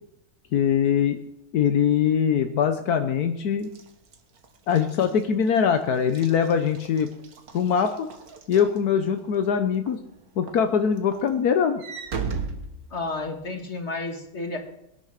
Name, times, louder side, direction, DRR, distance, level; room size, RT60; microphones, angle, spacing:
voice 1, 0.5-1.2 1.5-3.7 4.7-7.1 7.5-8.1 8.5-10.0 10.4-11.8, left 7 dB, 80° left, 7 dB, 1.5 m, -22 dB
Walk footsteps / Slam, 3.6-9.4 9.9-10.1 10.5-13.5, right 5 dB, 70° right, 2.0 m, -37 dB
voice 2, 12.9-14.6, left 3 dB, 45° left, 4 dB, 2.5 m, -31 dB
22.0 x 9.9 x 6.6 m, 0.83 s
omnidirectional pair, 1.6 m